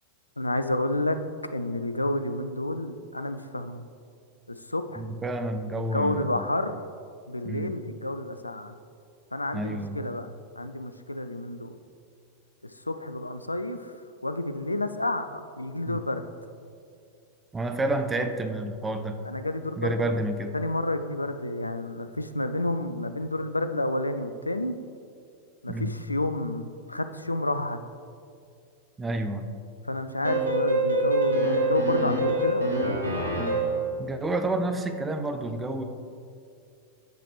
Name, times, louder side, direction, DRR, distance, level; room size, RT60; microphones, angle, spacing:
voice 1, 0.4-1.2 1.5-3.9 4.7-5.0 5.9-6.8 7.3-8.7 9.3-11.8 12.8-13.9 14.2-16.2 19.2-20.1 20.5-24.8 25.6-27.8 29.9-33.2, left 1 dB, 85° left, 10 dB, 0.3 m, -30 dB
voice 2, 5.0-6.5 7.4-7.7 9.5-10.0 15.9-16.0 17.5-19.2 19.8-20.5 25.7-26.0 29.0-29.5 34.0-35.8, right 2 dB, 15° right, 6 dB, 0.5 m, -29 dB
sound 1, 30.2-33.9, right 2 dB, 75° right, 1.1 m, -25 dB
9.1 x 5.7 x 3.2 m, 2.4 s
figure-of-eight pair, 90°, 0 cm